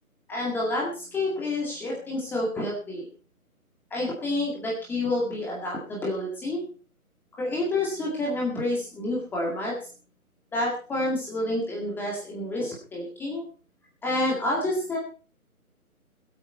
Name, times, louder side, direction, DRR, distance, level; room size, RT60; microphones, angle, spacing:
voice 1, 0.3-3.1 3.9-6.6 7.3-9.8 10.5-13.4 14.0-15.0, left 1 dB, 5° left, -3 dB, 2.0 m, -28 dB
21.0 x 8.6 x 4.3 m, 0.38 s
figure-of-eight pair, 150°, 44 cm